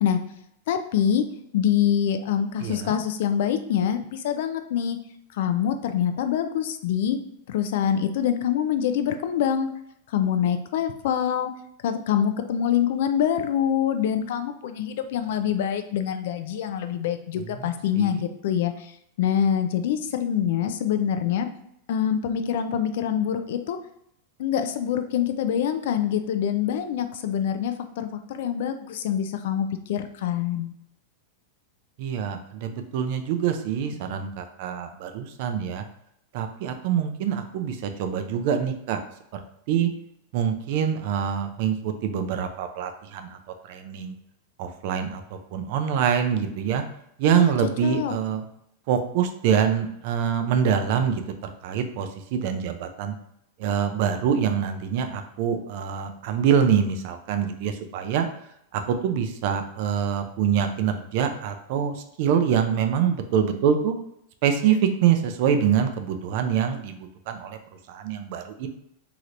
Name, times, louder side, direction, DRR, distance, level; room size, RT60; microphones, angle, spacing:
voice 1, 0.7-1.3 1.5-5.0 5.3-7.2 7.5-9.7 10.1-11.5 11.8-18.9 19.2-21.5 21.9-23.8 24.4-30.7 47.3-47.5 47.8-48.1, left 9 dB, 65° left, 8 dB, 0.4 m, -25 dB
voice 2, 2.6-3.0 17.5-17.7 17.9-18.2 32.0-35.8 36.3-39.0 39.3-39.4 39.7-39.9 40.3-43.4 43.7-44.1 44.6-45.2 45.5-46.8 47.2-48.4 48.9-53.1 53.6-58.3 58.7-64.0 64.4-67.6 67.9-68.7, right 8 dB, 55° right, 7 dB, 0.4 m, -25 dB
3.1 x 2.8 x 2.5 m, 0.77 s
supercardioid pair, 140°, 0 cm